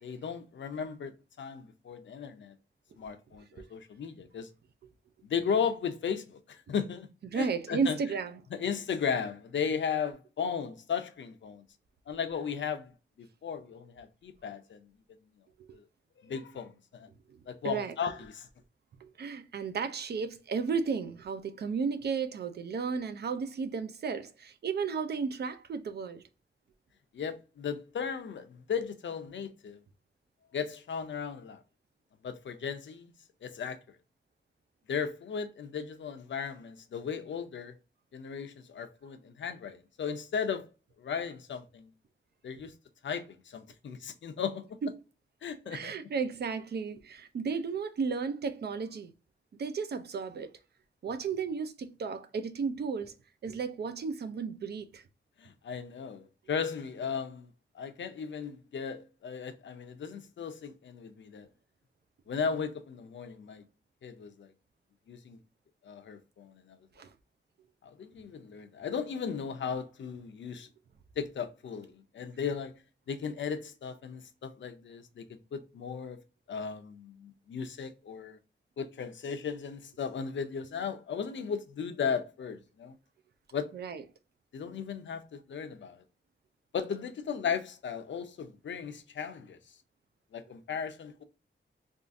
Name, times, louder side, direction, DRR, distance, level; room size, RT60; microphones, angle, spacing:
voice 1, 0.0-1.1 1.4-2.5 3.0-4.5 5.2-8.0 8.5-11.6 12.1-12.9 13.2-14.8 15.7-15.8 16.2-17.1 17.5-18.5 27.1-29.8 30.5-31.6 32.2-33.1 33.4-33.8 34.9-37.8 38.1-40.7 41.0-41.9 42.4-42.7 43.0-44.6 45.4-45.9 55.4-57.5 57.7-61.5 62.3-63.6 64.0-64.5 65.1-65.4 65.8-66.8 67.8-70.7 71.2-72.7 73.1-76.2 76.5-78.4 78.8-82.9 83.5-83.7 84.5-86.0 86.7-89.6 90.3-91.2, left 6 dB, 75° left, 0.5 m, -36 dB
voice 2, 7.2-8.4 17.6-17.9 19.0-26.2 44.8-44.9 45.7-49.1 49.6-50.5 51.0-53.1 53.4-55.0 67.0-67.1 83.7-84.0, right 5 dB, 60° right, 0.4 m, -33 dB
3.6 x 2.4 x 2.5 m
wide cardioid pair, 180°, 19 cm